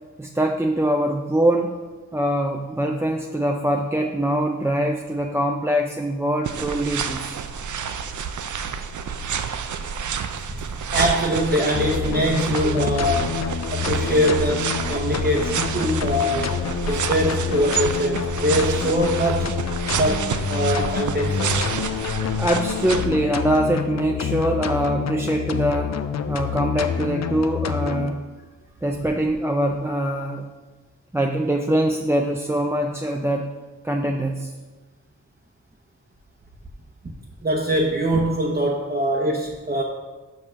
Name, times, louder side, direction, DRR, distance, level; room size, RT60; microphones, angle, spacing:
voice 1, 0.2-1.8 2.1-7.4 22.4-26.0 26.3-28.2 28.8-30.5 31.1-33.5 33.8-34.5, right 1 dB, 10° right, 2 dB, 0.4 m, -23 dB
sound 1, 6.4-23.1, right 6 dB, 75° right, 0.5 m, -29 dB
voice 2, 10.9-13.4 13.7-16.6 16.9-19.5 20.0-21.7 37.4-39.8, equal, 30° right, -2 dB, 0.9 m, -23 dB
sound 2, 11.7-28.1, left 7 dB, 60° left, 0.5 m, -27 dB
6.3 x 5.6 x 5.8 m, 1.3 s
wide cardioid pair, 90°, 30 cm